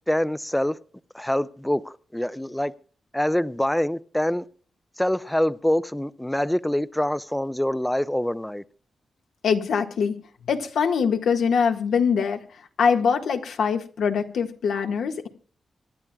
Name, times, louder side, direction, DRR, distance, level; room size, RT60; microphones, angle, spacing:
voice 1, 0.1-0.8 1.1-2.7 3.1-4.5 5.0-8.6, left 1 dB, 5° left, 0.5 m, -25 dB
voice 2, 9.4-10.2 10.4-15.3, left 6 dB, 85° left, 1.7 m, -23 dB
26.0 x 11.0 x 2.4 m
cardioid pair, 90°, 0 cm